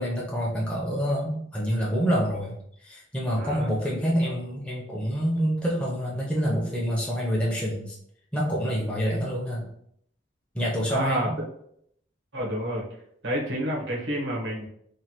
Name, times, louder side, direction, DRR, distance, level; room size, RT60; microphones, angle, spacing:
voice 1, 0.0-2.6 2.8-8.0 8.3-9.7 10.5-11.4, equal, 5° left, -5 dB, 0.6 m, -27 dB
voice 2, 3.4-3.7 10.9-11.3 12.3-12.8 13.2-14.7, equal, 90° right, -3 dB, 1.0 m, -29 dB
3.2 x 2.2 x 2.8 m, 0.70 s
head